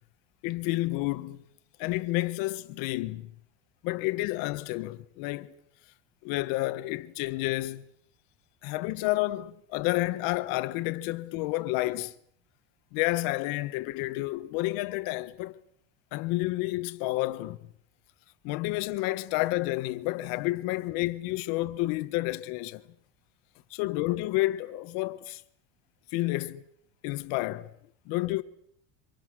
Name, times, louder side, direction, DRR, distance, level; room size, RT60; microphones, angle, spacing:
voice 1, 0.4-1.4 1.8-3.3 3.8-5.5 6.2-7.9 8.6-12.1 12.9-15.6 16.1-17.6 18.4-22.8 23.7-25.4 26.1-26.6 27.0-27.7 28.1-28.4, left 19 dB, 65° left, 1.6 m, -30 dB
29.0 x 26.0 x 6.4 m
cardioid pair, 160°, 38 cm